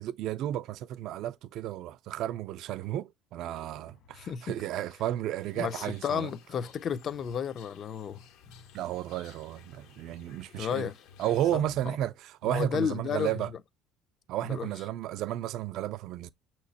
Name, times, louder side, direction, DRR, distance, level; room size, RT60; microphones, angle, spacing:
voice 1, 0.0-6.3 8.7-10.9 11.2-13.5 14.3-16.3, right 12 dB, 60° right, 0.4 m, -33 dB
sound 1, 3.7-5.8 6.3-7.3 7.7-10.3 10.7-12.2, left 5 dB, 60° left, 1.4 m, -58 dB
voice 2, 4.1-4.6 5.6-8.2 10.6-11.0 11.5-11.9 12.4-13.4 14.5-14.7, left 7 dB, 40° left, 0.5 m, -32 dB
sound 2, 5.3-11.6, left 9 dB, 80° left, 1.2 m, -57 dB
6.4 x 2.9 x 2.8 m
cardioid pair, 135°, 0 cm